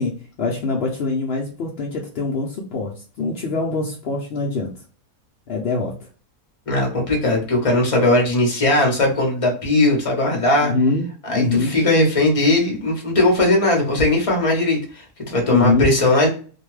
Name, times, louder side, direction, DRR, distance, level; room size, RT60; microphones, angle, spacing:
voice 1, 0.0-2.9 3.2-4.7 5.5-5.9 10.6-11.7 15.5-15.9, left 3 dB, 75° left, -1 dB, 0.5 m, -23 dB
voice 2, 6.7-10.7 11.3-16.3, left 2 dB, 30° left, 0 dB, 0.7 m, -18 dB
2.6 x 2.2 x 3.1 m, 0.39 s
omnidirectional pair, 1.7 m